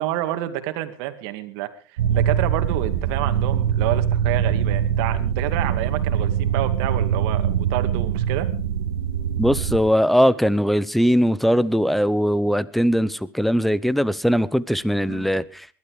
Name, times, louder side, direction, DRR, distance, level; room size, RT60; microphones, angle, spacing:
voice 1, 0.0-8.5 15.1-15.3, right 14 dB, 65° right, 8 dB, 2.4 m, -29 dB
sound 1, 2.0-9.8, right 9 dB, 85° right, 1.9 m, -23 dB
voice 2, 9.4-15.4, equal, ahead, 19 dB, 0.9 m, -20 dB
21.0 x 12.0 x 4.9 m, 0.38 s
supercardioid pair, 115°, 13 cm